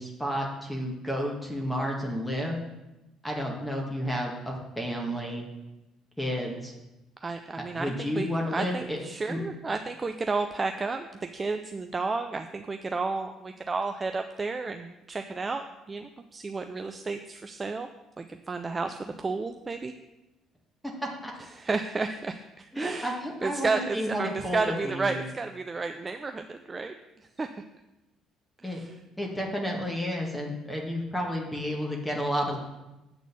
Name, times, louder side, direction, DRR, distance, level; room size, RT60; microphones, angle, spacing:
voice 1, 0.0-2.6 3.2-5.4 6.2-6.7 7.8-9.0 9.3-9.4 21.2-21.3 22.7-25.2 28.6-28.8 29.2-32.6, equal, 5° left, -1 dB, 1.7 m, -31 dB
voice 2, 7.2-17.9 18.2-19.9 21.5-27.5 28.6-29.0, right 3 dB, 30° right, 7 dB, 0.5 m, -32 dB
8.2 x 4.0 x 7.0 m, 0.99 s
figure-of-eight pair, 50°, 0 cm